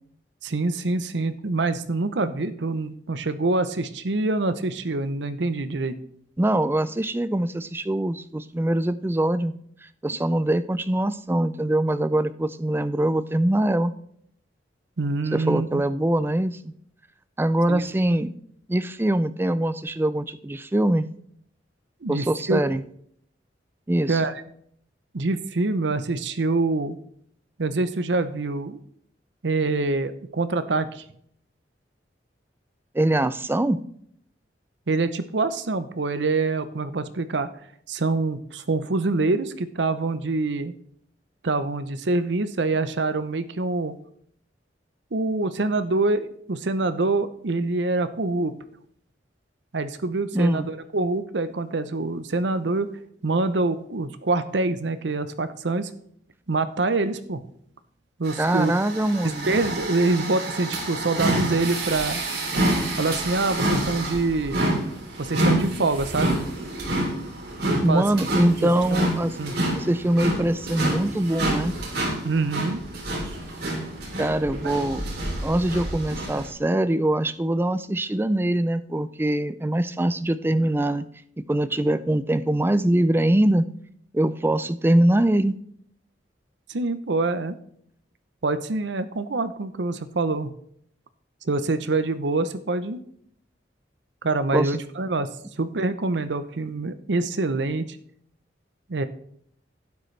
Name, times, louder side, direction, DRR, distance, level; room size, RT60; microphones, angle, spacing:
voice 1, 0.4-6.0 15.0-15.8 17.7-17.8 22.0-22.6 24.1-24.3 25.1-27.0 27.6-28.8 29.4-31.0 34.9-37.5 37.9-40.7 41.4-43.9 45.1-48.5 49.7-52.9 53.2-55.9 56.5-57.4 58.2-58.7 59.5-62.2 63.0-64.6 65.2-66.4 67.7-68.0 68.6-68.7 69.4-69.5 72.2-72.8 86.7-87.5 88.4-90.5 91.5-93.0 94.2-95.3 95.6-98.0 98.9-99.1, right 3 dB, 75° right, 11 dB, 0.7 m, -25 dB
voice 2, 6.4-9.5 10.0-13.9 15.3-16.7 17.4-18.4 18.7-21.1 22.1-22.8 23.9-24.2 32.9-33.8 50.3-50.7 58.4-59.5 67.8-69.3 69.8-71.7 74.2-75.0 75.4-81.1 81.5-83.7 84.1-85.6 94.5-94.8, right 1 dB, 10° right, 13 dB, 0.4 m, -23 dB
sound 1, 58.2-76.5, right 1 dB, 60° right, 3.1 m, -28 dB
11.5 x 9.4 x 3.3 m, 0.66 s
head